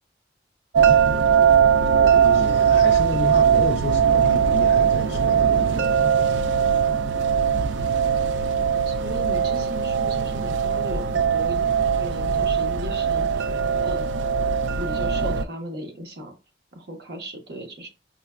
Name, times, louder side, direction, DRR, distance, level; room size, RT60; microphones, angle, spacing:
sound 1, 0.7-15.4, right 7 dB, 85° right, 0.4 m, -20 dB
voice 1, 2.1-6.1, left 3 dB, 80° left, 0.4 m, -31 dB
voice 2, 8.8-11.7 12.0-13.4 13.8-14.1 14.4-14.5 14.8-16.4 16.7-17.9, right 1 dB, 60° right, 1.0 m, -36 dB
5.3 x 2.2 x 2.3 m
head